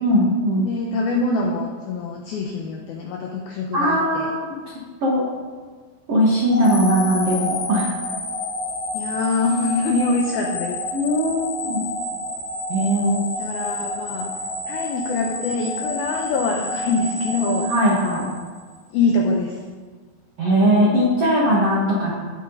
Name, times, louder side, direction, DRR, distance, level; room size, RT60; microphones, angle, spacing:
voice 1, 0.0-0.7 3.7-4.5 5.0-5.3 6.1-7.9 10.9-11.9 12.7-13.2 17.7-18.3 20.4-22.1, equal, 75° right, -4 dB, 1.4 m, -19 dB
voice 2, 0.6-4.3 8.9-10.8 13.4-14.3 14.7-17.7 18.9-19.6, left 3 dB, 85° left, 0 dB, 2.1 m, -24 dB
sound 1, 6.5-18.7, left 1 dB, 55° left, 2.6 m, -29 dB
17.0 x 7.8 x 4.0 m, 1.5 s
omnidirectional pair, 5.6 m